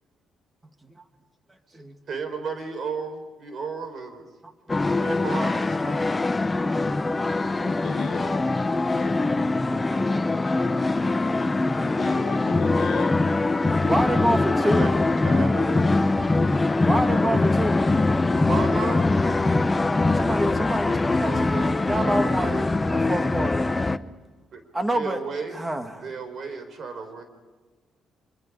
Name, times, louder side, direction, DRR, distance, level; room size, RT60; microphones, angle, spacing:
voice 1, 2.1-4.2 5.0-6.1 14.6-16.1 18.3-19.3 21.2-22.7 24.5-24.6 24.9-25.7 26.0-27.2, right 4 dB, 55° right, 8 dB, 4.3 m, -34 dB
sound 1, 4.7-24.0, left 2 dB, 20° left, 0.8 m, -23 dB
voice 2, 7.7-8.4 8.9-9.2 11.8-13.1, left 8 dB, 75° left, 6 dB, 1.6 m, -34 dB
voice 3, 8.8-10.5 13.8-14.9 16.8-17.9 20.1-23.7 24.7-25.2 25.5-26.0, right 1 dB, 15° right, 6 dB, 2.3 m, -28 dB
26.0 x 24.0 x 5.1 m, 1.4 s
cardioid pair, 90°, 0 cm